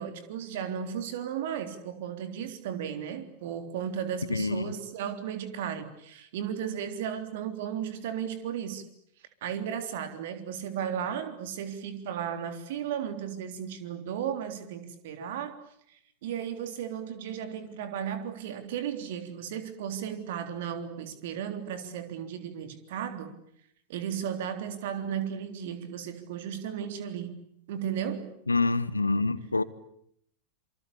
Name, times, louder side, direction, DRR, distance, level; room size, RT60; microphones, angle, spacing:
voice 1, 0.0-8.9 9.4-23.3 23.9-28.3, right 8 dB, 55° right, 3.6 m, -35 dB
voice 2, 4.3-4.7 15.2-15.3 28.5-29.6, left 3 dB, 80° left, 1.3 m, -26 dB
27.0 x 25.5 x 8.6 m
figure-of-eight pair, 90°, 0 cm